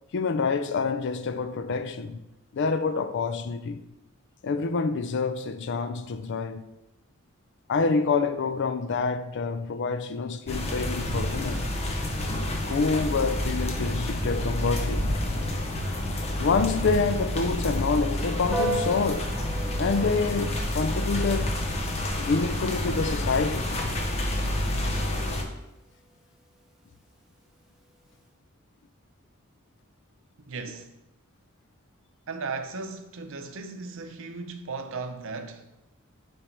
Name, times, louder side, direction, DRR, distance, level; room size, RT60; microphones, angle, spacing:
voice 1, 0.1-2.2 2.5-3.8 4.4-6.6 7.7-11.7 12.7-15.2 16.4-19.3 19.8-21.6 22.2-23.8, left 4 dB, 60° left, 0.4 m, -27 dB
sound 1, 10.5-25.4, left 1 dB, 30° left, 0.8 m, -29 dB
Piano, 18.5-28.3, right 1 dB, ahead, 0.8 m, -39 dB
voice 2, 30.4-30.9 32.3-35.7, right 4 dB, 65° right, 0.6 m, -36 dB
7.9 x 3.4 x 4.5 m
head